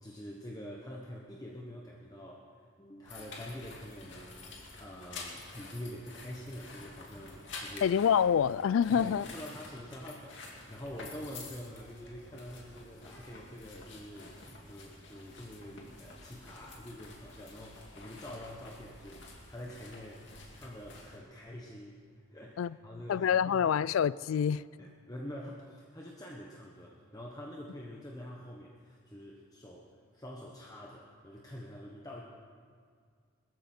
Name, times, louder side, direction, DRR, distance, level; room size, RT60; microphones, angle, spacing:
voice 1, 0.0-8.0 8.9-22.0 22.3-23.7 24.8-32.2, equal, 20° left, 1.1 m, -46 dB
sound 1, 3.0-21.2, left 3 dB, 65° left, 2.5 m, -49 dB
voice 2, 7.8-9.3 22.6-22.7 23.1-24.6, left 8 dB, 85° left, 0.3 m, -26 dB
21.5 x 13.5 x 4.4 m
head